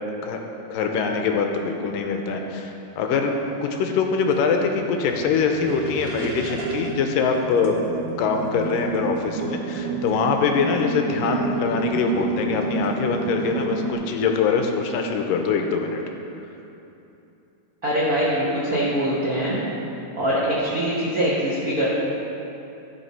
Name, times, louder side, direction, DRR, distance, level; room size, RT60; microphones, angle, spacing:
voice 1, 0.7-3.3 3.6-7.9 8.2-16.0, left 5 dB, 85° left, 4 dB, 2.3 m, -23 dB
sound 1, 4.3-13.9, right 3 dB, 60° right, 1.6 m, -29 dB
voice 2, 17.8-19.6 20.2-21.9, equal, 80° right, -8 dB, 0.8 m, -23 dB
14.0 x 5.7 x 4.2 m, 2.9 s
omnidirectional pair, 4.0 m